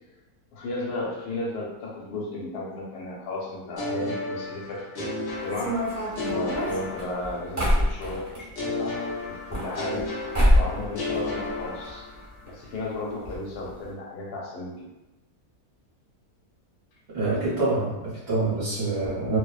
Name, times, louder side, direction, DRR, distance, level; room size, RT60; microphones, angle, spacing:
voice 1, 0.5-5.1 5.4-5.9 6.3-10.1 10.5-12.1 12.4-14.9, left 2 dB, 80° left, -3 dB, 1.2 m, -34 dB
sound 1, 3.8-7.7 8.5-12.4, left 2 dB, 60° left, 0.5 m, -33 dB
sound 2, 5.5-8.4 9.3-10.1 10.3-10.8 11.1-11.9 12.2-12.3 12.5-12.6 13.3-13.4 13.7-13.8, equal, 20° right, 0.5 m, -25 dB
voice 2, 17.1-19.4, right 2 dB, 45° right, -10 dB, 0.9 m, -26 dB
2.6 x 2.0 x 2.3 m, 1.0 s
omnidirectional pair, 1.6 m